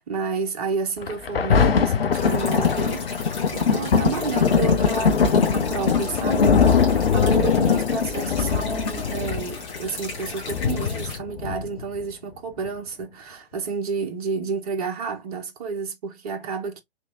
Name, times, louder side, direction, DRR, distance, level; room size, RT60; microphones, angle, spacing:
voice 1, 0.0-16.8, right 5 dB, 35° right, 1.1 m, -31 dB
Thunder, 1.0-12.0 12.7-12.8, left 6 dB, 65° left, 0.7 m, -21 dB
sound 1, 2.1-11.2, left 4 dB, 15° left, 1.3 m, -37 dB
3.4 x 2.9 x 2.6 m
figure-of-eight pair, 120°, 31 cm